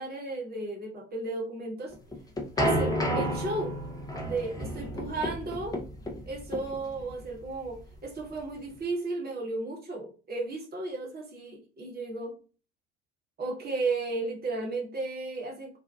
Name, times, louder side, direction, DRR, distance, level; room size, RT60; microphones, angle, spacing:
voice 1, 0.0-1.9 2.5-3.8 4.2-5.7 6.3-12.4 13.4-15.8, right 3 dB, 25° right, -1 dB, 1.0 m, -34 dB
sound 1, 1.9-8.8, equal, 10° left, 0.6 m, -32 dB
2.6 x 2.2 x 2.3 m, 0.37 s
figure-of-eight pair, 60°, 34 cm